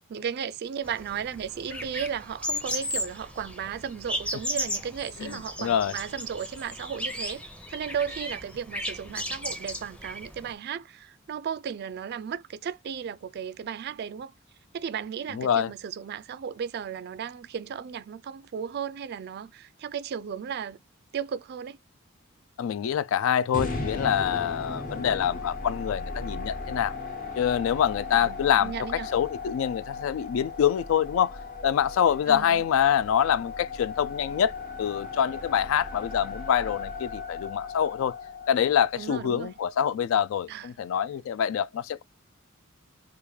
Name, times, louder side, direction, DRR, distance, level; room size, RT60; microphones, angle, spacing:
voice 1, 0.1-7.4 7.7-14.3 14.7-20.8 21.1-21.8 28.1-29.1 32.3-32.6 38.9-39.5 40.5-40.7, right 7 dB, 50° right, 0.3 m, -35 dB
sound 1, 0.8-10.5, equal, 5° left, 0.6 m, -35 dB
voice 2, 5.2-5.9 15.3-15.7 22.6-26.9 27.3-31.3 31.6-34.5 34.8-38.2 38.5-42.0, left 9 dB, 70° left, 0.3 m, -25 dB
sound 2, 23.5-39.7, left 4 dB, 40° left, 1.0 m, -37 dB
3.4 x 2.5 x 3.1 m
head